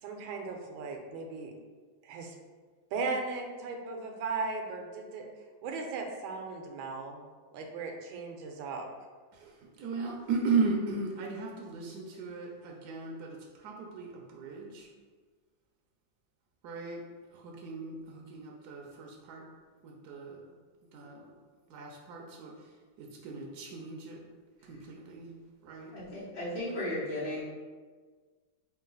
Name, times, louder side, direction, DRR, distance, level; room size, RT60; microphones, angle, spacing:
voice 1, 0.0-1.5 2.0-2.3 2.9-5.3 5.6-7.2 7.5-8.9, right 4 dB, 90° right, 3 dB, 1.4 m, -37 dB
voice 2, 9.3-14.9 16.6-17.0 17.3-19.5 19.8-20.4 20.9-21.3 21.7-24.2 24.6-25.3 25.6-25.9, right 4 dB, 75° right, -1 dB, 0.9 m, -36 dB
voice 3, 25.9-27.4, left 1 dB, 65° left, -10 dB, 1.7 m, -35 dB
3.9 x 2.4 x 3.8 m, 1.5 s
omnidirectional pair, 2.1 m